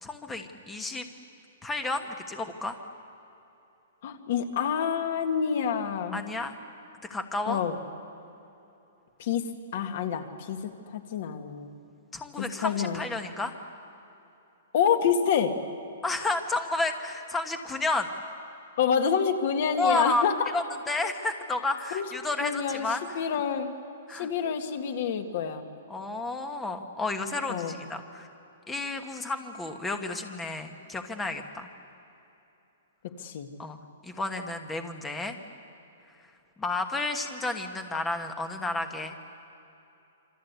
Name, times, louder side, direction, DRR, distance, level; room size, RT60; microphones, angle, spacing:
voice 1, 0.0-1.0 1.6-2.8 6.1-6.5 7.1-7.6 12.1-13.5 16.0-18.1 19.8-20.3 20.5-23.2 24.1-24.3 25.9-28.3 28.7-31.7 33.6-33.8 34.0-35.4 36.6-39.1, left 2 dB, 5° left, 6 dB, 1.2 m, -31 dB
voice 2, 4.0-6.2 7.5-7.7 9.2-9.4 9.7-11.7 12.4-13.0 14.7-15.6 18.8-20.3 21.9-22.0 22.4-22.9 23.1-23.7 24.1-25.7 27.5-27.8 33.2-33.5, left 7 dB, 40° left, 7 dB, 1.9 m, -27 dB
27.0 x 25.0 x 8.2 m, 2.9 s
hypercardioid pair, 175°, 0 cm